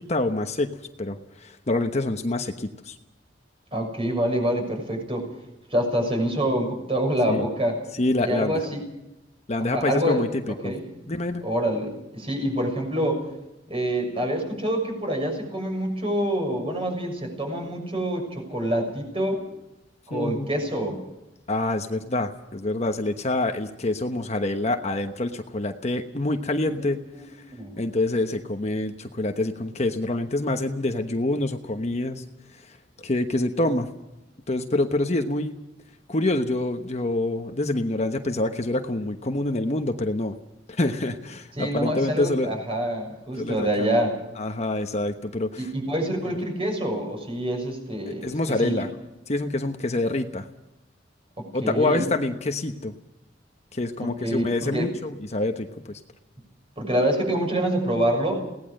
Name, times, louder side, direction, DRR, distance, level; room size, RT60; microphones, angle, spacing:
voice 1, 0.0-3.0 7.3-7.4 8.0-8.6 9.5-10.7 11.1-11.4 20.1-20.5 21.5-27.0 27.3-27.4 27.8-32.2 32.5-33.9 34.5-35.6 36.1-40.3 40.7-42.5 43.3-43.9 44.4-45.7 48.1-48.9 49.3-50.5 51.5-52.9 53.7-56.0, left 2 dB, 40° left, 6 dB, 1.1 m, -26 dB
voice 2, 3.7-5.3 5.7-7.8 8.2-8.8 9.7-10.2 10.6-10.8 11.4-13.2 13.7-19.4 20.1-21.0 26.7-26.8 27.5-27.8 41.6-44.1 45.6-48.3 48.6-48.7 51.4-52.0 54.0-54.9 56.8-58.4, right 1 dB, 30° right, 2 dB, 6.5 m, -26 dB
22.5 x 18.0 x 6.6 m, 0.93 s
head